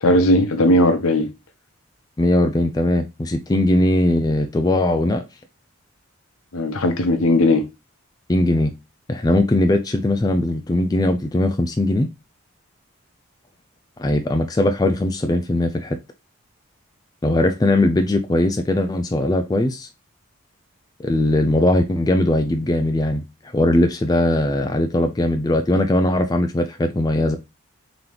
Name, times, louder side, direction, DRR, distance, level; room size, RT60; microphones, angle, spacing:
voice 1, 0.0-1.3 6.5-7.7, left 1 dB, 80° left, 0.8 m, -17 dB
voice 2, 2.2-5.2 8.3-8.7 9.1-12.1 14.0-16.0 17.2-19.9 21.0-23.2 23.5-27.4, left 1 dB, 20° left, 0.3 m, -19 dB
3.9 x 2.9 x 3.3 m
head